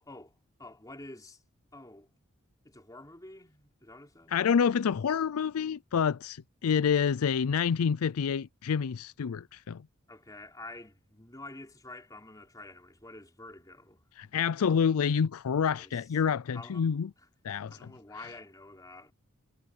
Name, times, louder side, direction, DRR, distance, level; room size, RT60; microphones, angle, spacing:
voice 1, 0.0-1.4 1.7-2.1 2.6-4.4 10.1-14.0 15.5-16.2 16.5-16.9 17.2-19.1, left 2 dB, 15° left, 3.7 m, -49 dB
voice 2, 4.3-9.8 14.2-17.1 17.4-17.9, left 7 dB, 90° left, 0.4 m, -28 dB
head